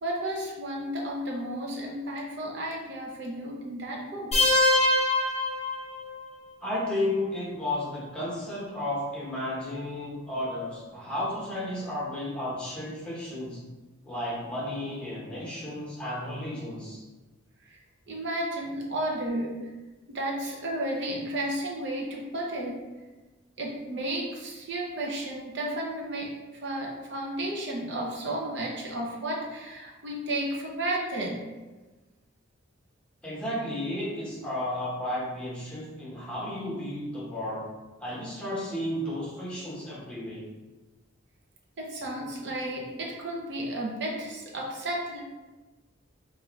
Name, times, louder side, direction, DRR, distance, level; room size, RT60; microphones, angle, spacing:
voice 1, 0.0-4.3 17.6-17.8 18.1-19.6 20.1-22.9 23.6-26.3 26.6-31.4 41.8-45.2, right 1 dB, 60° right, -2 dB, 0.6 m, -33 dB
sound 1, 4.3-6.3, left 2 dB, 30° left, 0.8 m, -23 dB
voice 2, 6.6-13.6 14.0-17.0 33.2-37.6 38.0-40.5, left 1 dB, 5° left, -7 dB, 1.0 m, -33 dB
4.5 x 2.5 x 3.0 m, 1.2 s
head